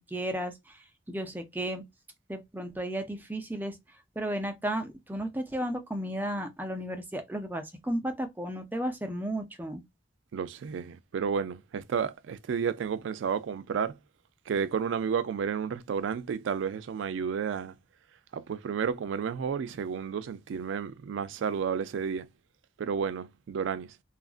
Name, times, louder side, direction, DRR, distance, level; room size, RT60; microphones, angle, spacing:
voice 1, 0.1-1.8 2.3-3.8 4.2-9.8, right 1 dB, 10° right, 0.4 m, -34 dB
voice 2, 10.3-14.0 14.5-17.7 18.3-22.3 22.8-23.9, right 6 dB, 85° right, 0.3 m, -31 dB
2.8 x 2.4 x 2.3 m
head